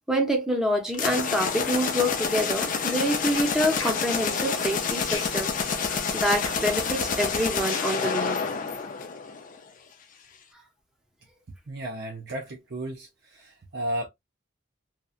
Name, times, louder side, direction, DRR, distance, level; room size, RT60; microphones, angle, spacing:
voice 1, 0.1-5.5 6.1-8.4, equal, 5° right, 0.6 m, -26 dB
sound 1, 0.9-9.6, left 5 dB, 40° left, 0.4 m, -28 dB
sound 2, 3.3-8.3, left 5 dB, 80° left, 0.8 m, -38 dB
voice 2, 11.7-14.1, right 1 dB, 50° right, 0.5 m, -34 dB
2.8 x 2.2 x 2.3 m
head